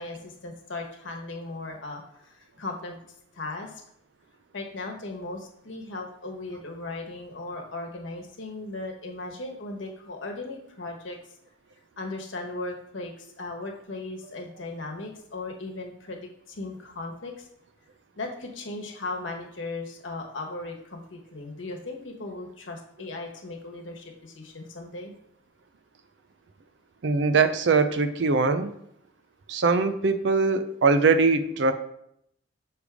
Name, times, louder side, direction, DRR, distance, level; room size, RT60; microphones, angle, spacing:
voice 1, 0.0-3.0 3.3-3.8 4.5-11.2 12.0-17.5 18.2-25.1, left 2 dB, 80° left, 2 dB, 1.1 m, -37 dB
voice 2, 27.0-28.7 29.5-31.7, right 4 dB, 65° right, 10 dB, 0.5 m, -22 dB
6.4 x 3.4 x 4.8 m, 0.74 s
head